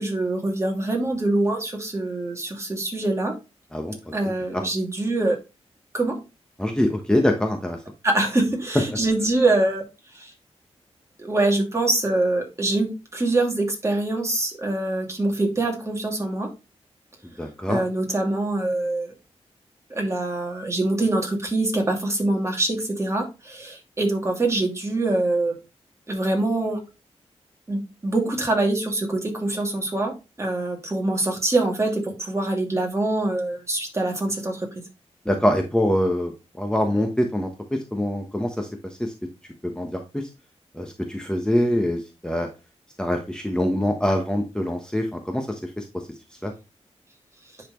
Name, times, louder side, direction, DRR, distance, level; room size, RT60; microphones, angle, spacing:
voice 1, 0.0-3.4 4.1-5.4 5.9-6.2 8.0-9.8 10.1-10.3 11.2-16.5 17.7-19.1 19.9-25.6 26.1-26.8 27.7-34.7, right 2 dB, 25° right, 1 dB, 2.4 m, -24 dB
voice 2, 6.6-7.8 17.2-17.8 35.2-37.5 37.9-39.1 39.6-40.3 40.7-42.5 43.0-45.8 46.4-46.5, left 1 dB, 5° left, 3 dB, 1.1 m, -24 dB
10.0 x 4.2 x 3.1 m, 0.28 s
cardioid pair, 80°, 11 cm